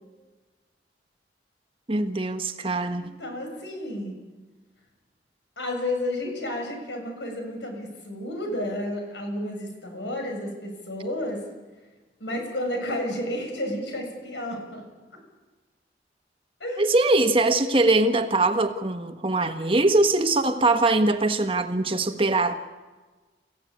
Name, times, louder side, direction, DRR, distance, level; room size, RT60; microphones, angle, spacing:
voice 1, 1.9-3.0 16.8-22.7, right 2 dB, 30° right, 7 dB, 1.4 m, -22 dB
voice 2, 2.9-4.1 5.6-11.4 12.2-14.9 16.6-17.0, left 1 dB, 85° left, 3 dB, 6.9 m, -31 dB
29.5 x 16.0 x 8.7 m, 1.3 s
head